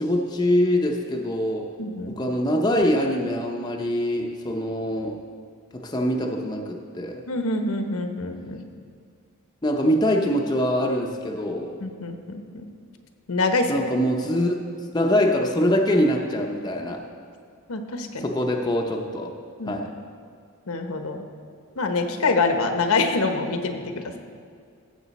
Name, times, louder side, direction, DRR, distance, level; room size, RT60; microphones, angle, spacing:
voice 1, 0.0-1.7 2.1-5.2 5.7-7.2 9.6-11.8 13.7-14.5 14.9-17.0 18.2-19.3 19.7-19.9, equal, 20° left, 1 dB, 0.6 m, -23 dB
voice 2, 1.8-2.1 7.3-8.6 11.8-12.6 13.3-13.8 17.7-18.3 19.6-19.7 20.7-21.2 21.8-23.8, left 3 dB, 75° left, 5 dB, 0.9 m, -25 dB
15.0 x 7.2 x 4.1 m, 2.2 s
head